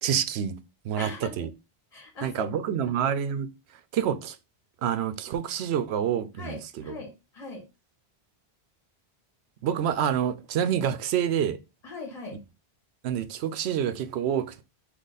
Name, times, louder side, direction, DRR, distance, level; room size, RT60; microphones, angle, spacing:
voice 1, 0.0-0.5 0.8-1.5 2.2-3.5 3.9-4.4 4.8-6.9 9.6-11.6 13.0-14.6, right 9 dB, 85° right, 0.8 m, -27 dB
voice 2, 1.0-1.5 1.9-2.9 6.4-7.6 11.8-12.4, left 3 dB, 40° left, 1.8 m, -40 dB
3.8 x 3.0 x 3.9 m
omnidirectional pair, 1.1 m